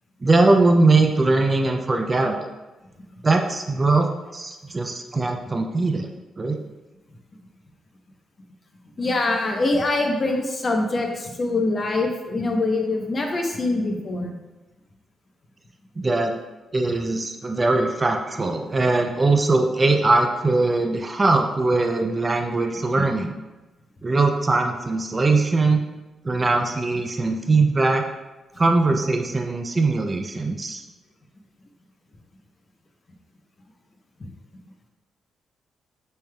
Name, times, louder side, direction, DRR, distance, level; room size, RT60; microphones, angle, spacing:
voice 1, 0.2-2.5 3.2-6.1 6.4-6.6 16.0-16.3 16.7-23.3 24.0-25.8 26.2-28.1 28.6-30.8, right 3 dB, 30° right, 4 dB, 0.4 m, -21 dB
voice 2, 9.0-14.4, left 2 dB, 35° left, 2 dB, 0.8 m, -24 dB
6.9 x 3.3 x 2.3 m, 1.1 s
cardioid pair, 90°, 0 cm